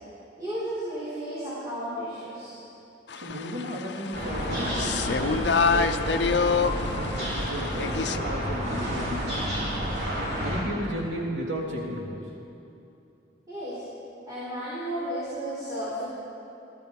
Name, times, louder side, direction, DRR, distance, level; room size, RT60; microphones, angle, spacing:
voice 1, 0.4-2.6 13.5-13.8 14.3-16.0, equal, 20° right, -11 dB, 4.3 m, -33 dB
sound 1, 3.1-8.2, left 5 dB, 70° left, 0.6 m, -27 dB
voice 2, 3.2-9.9 10.4-12.2, equal, 85° right, -5 dB, 3.6 m, -34 dB
sound 2, 4.1-10.6, equal, 65° right, 4.0 m, -30 dB
17.5 x 13.5 x 5.4 m, 2.8 s
head